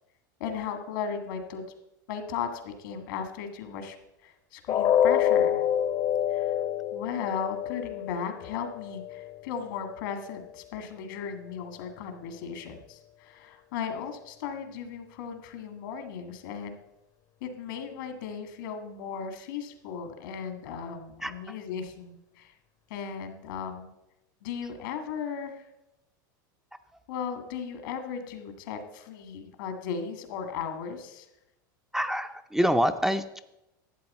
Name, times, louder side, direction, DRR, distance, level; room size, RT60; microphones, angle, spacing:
voice 1, 0.4-1.7 2.1-4.0 4.2-5.6 6.3-6.6 6.9-16.8 17.4-22.5 22.9-23.9 24.4-25.6 27.1-31.3, left 7 dB, 75° left, 7 dB, 1.8 m, -36 dB
sound 1, 4.7-10.7 11.0-11.2 11.7-11.8, left 10 dB, 40° left, 0.7 m, -28 dB
voice 2, 21.2-21.6 31.9-33.4, equal, 5° right, 8 dB, 0.5 m, -26 dB
12.5 x 8.0 x 4.2 m, 0.89 s
supercardioid pair, 115°, 11 cm